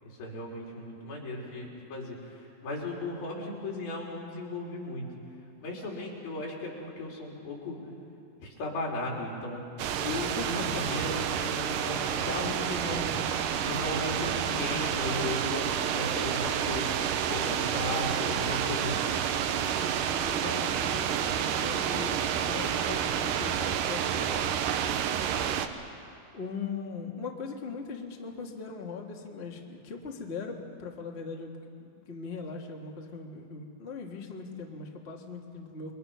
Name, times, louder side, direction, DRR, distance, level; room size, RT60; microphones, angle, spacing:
voice 1, 0.0-5.1 5.6-7.8 8.4-9.7 10.0-12.6 12.9-13.0 13.6-19.1, left 2 dB, 80° left, -2 dB, 5.6 m, -36 dB
sound 1, 9.8-25.7, right 9 dB, 75° right, 2.4 m, -29 dB
voice 2, 10.3-11.0 12.3-13.3 20.0-24.5 26.3-31.5 31.8-35.9, left 4 dB, 30° left, 0 dB, 1.3 m, -40 dB
29.0 x 22.5 x 5.8 m, 2.5 s
omnidirectional pair, 4.2 m